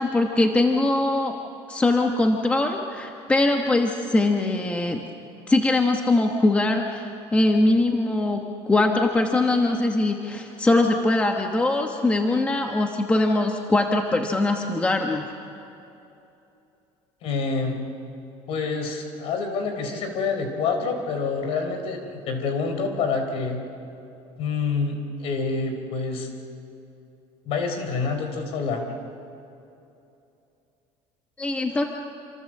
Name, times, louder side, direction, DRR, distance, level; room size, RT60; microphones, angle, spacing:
voice 1, 0.0-1.3 1.7-5.0 5.5-15.3 31.4-31.9, left 2 dB, 10° left, 3 dB, 1.0 m, -22 dB
voice 2, 17.2-17.8 18.5-23.6 24.4-26.3 27.5-28.8, left 4 dB, 55° left, 6 dB, 3.9 m, -27 dB
27.5 x 26.5 x 7.6 m, 2.8 s
cardioid pair, 175°, 12 cm